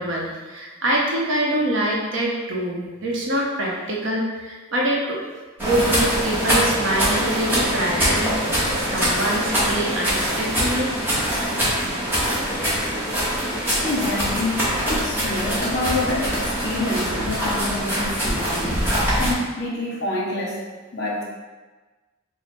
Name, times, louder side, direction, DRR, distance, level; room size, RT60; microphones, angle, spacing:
voice 1, 0.0-5.2 5.6-11.4, right 1 dB, 60° right, -3 dB, 0.7 m, -25 dB
sound 1, 5.6-19.3, equal, 10° right, 0.7 m, -23 dB
voice 2, 13.8-14.6 14.9-18.8 19.2-20.6 20.9-21.2, left 2 dB, 50° left, -5 dB, 0.8 m, -27 dB
3.2 x 2.0 x 4.1 m, 1.3 s
head